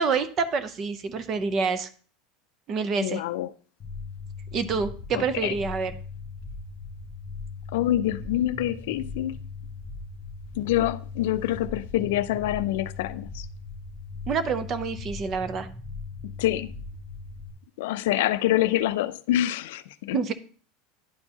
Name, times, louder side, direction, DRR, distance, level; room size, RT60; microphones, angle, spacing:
voice 1, 0.0-1.9 2.7-3.2 4.5-5.9 14.3-15.7 20.1-20.3, right 5 dB, 25° right, 0.5 m, -27 dB
voice 2, 3.0-3.5 5.1-5.5 7.7-9.4 10.6-13.4 16.4-16.7 17.8-20.2, left 13 dB, 70° left, 0.4 m, -26 dB
sound 1, 3.8-17.5, left 4 dB, 20° left, 1.3 m, -39 dB
11.0 x 4.5 x 2.8 m
supercardioid pair, 175°, 0 cm